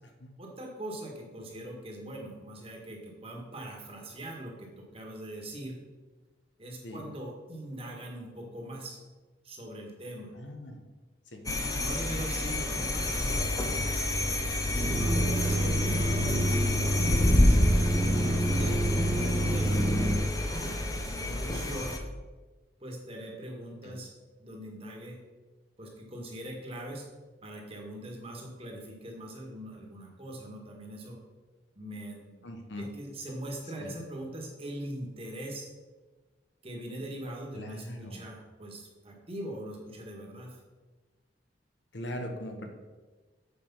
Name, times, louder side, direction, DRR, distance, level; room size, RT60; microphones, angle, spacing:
voice 1, 0.4-5.8 6.6-9.0 9.4-10.3 11.4-19.8 20.5-21.9 22.8-24.1 24.4-25.2 25.8-27.1 27.4-31.2 31.7-32.5 32.8-35.7 36.6-40.6, right 1 dB, 30° right, 0 dB, 1.7 m, -42 dB
voice 2, 10.3-10.8 11.3-11.4 12.7-12.9 14.0-14.2 15.5-15.8 23.8-24.0 32.4-32.9 33.8-33.9 37.5-38.3 41.9-42.7, left 1 dB, 75° left, 4 dB, 1.2 m, -41 dB
sound 1, 11.5-22.0, left 1 dB, 20° left, 0.7 m, -29 dB
sound 2, 14.7-20.2, right 1 dB, 10° right, 1.6 m, -27 dB
8.2 x 5.2 x 5.5 m, 1.3 s
head